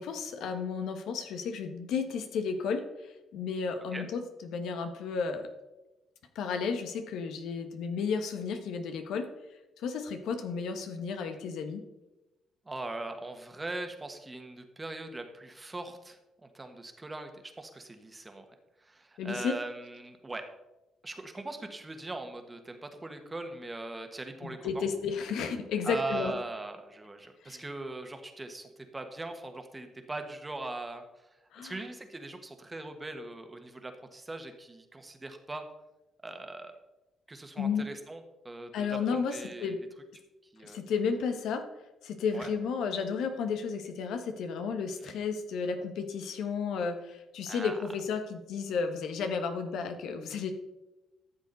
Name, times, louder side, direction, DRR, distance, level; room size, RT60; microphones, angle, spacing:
voice 1, 0.0-2.8 3.3-5.5 6.3-9.3 9.8-11.8 19.2-19.6 24.4-26.3 27.4-27.6 31.5-31.8 37.6-37.8 38.7-39.8 40.6-41.6 42.0-50.5, left 5 dB, 80° left, 7 dB, 1.2 m, -33 dB
voice 2, 12.6-18.4 18.8-20.4 21.0-24.8 25.8-31.0 31.5-35.6 36.2-36.7 37.3-39.8 40.5-40.8 42.3-42.5 45.0-45.1 47.5-47.8, right 2 dB, 20° right, 6 dB, 1.5 m, -40 dB
13.0 x 7.1 x 4.1 m, 0.99 s
cardioid pair, 90°, 0 cm